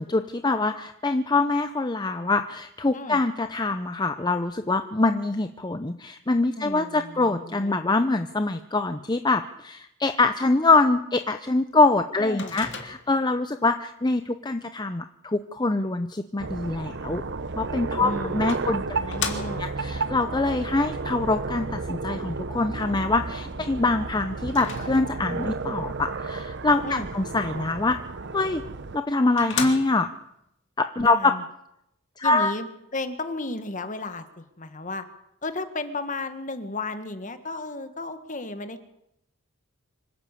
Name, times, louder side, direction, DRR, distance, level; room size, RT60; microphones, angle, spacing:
voice 1, 0.0-17.2 17.6-18.8 19.3-28.0 28.3-28.6 28.9-30.1 30.8-31.3 32.2-32.5, left 3 dB, 20° left, 9 dB, 0.7 m, -24 dB
voice 2, 6.6-7.8 12.2-12.6 18.0-19.6 26.8-27.1 31.0-31.4 32.2-35.0 35.4-38.8, left 2 dB, 35° left, 10 dB, 1.7 m, -34 dB
Microwave oven, 12.4-13.3 17.6-17.7 18.5-19.9 24.5-25.4 28.5-28.6 29.0-29.1 29.4-30.2, left 6 dB, 60° left, 2.5 m, -34 dB
sound 1, 16.4-29.0, right 3 dB, 55° right, 0.9 m, -32 dB
25.5 x 12.5 x 8.4 m, 0.82 s
head